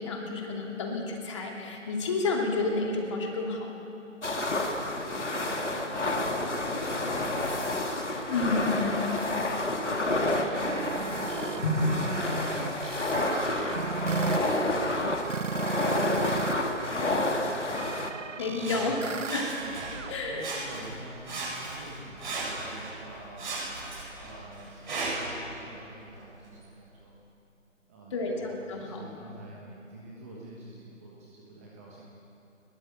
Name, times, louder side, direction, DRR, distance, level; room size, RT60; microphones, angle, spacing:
voice 1, 0.0-3.7 8.3-9.0 11.6-11.9 18.4-19.0 19.3-19.5 20.1-20.5 28.1-29.0, left 3 dB, 20° left, 0 dB, 2.6 m, -30 dB
sound 1, 4.2-18.1, left 2 dB, 60° left, 2.9 m, -29 dB
voice 2, 4.7-7.7 8.2-8.6 8.9-10.0 10.6-12.0 12.3-13.3 13.7-15.0 15.7-17.9 18.5-19.1 19.6-19.8 20.2-23.6 24.2-27.1 27.9-32.1, right 2 dB, 10° right, -5 dB, 1.5 m, -46 dB
sound 2, 10.4-16.5 16.8-20.1, right 5 dB, 70° right, 0.8 m, -35 dB
Sawing, 18.6-20.1 20.4-21.0 21.2-23.0 23.4-25.4 26.0-26.1, right 3 dB, 35° right, 7.7 m, -36 dB
22.0 x 22.0 x 8.2 m, 2.9 s
figure-of-eight pair, 155°, 40 cm